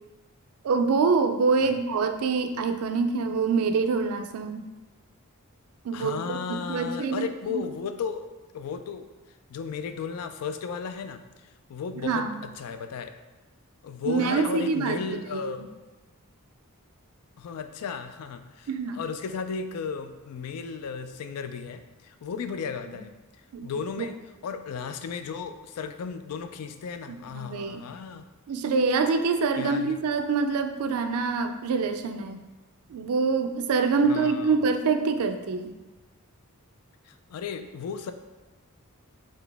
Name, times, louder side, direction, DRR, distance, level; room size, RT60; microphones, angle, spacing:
voice 1, 0.6-4.6 5.8-7.6 12.0-12.3 14.1-15.5 18.7-19.0 23.5-23.7 24.0-24.1 27.3-27.8 28.5-32.5 32.9-35.7, right 4 dB, 75° right, 8 dB, 0.4 m, -25 dB
voice 2, 5.9-9.1 9.5-13.2 13.8-15.7 17.4-23.1 23.6-28.3 29.6-30.0 34.1-34.5 37.1-38.1, left 6 dB, 85° left, 9 dB, 0.3 m, -35 dB
3.9 x 2.9 x 3.4 m, 1.1 s
head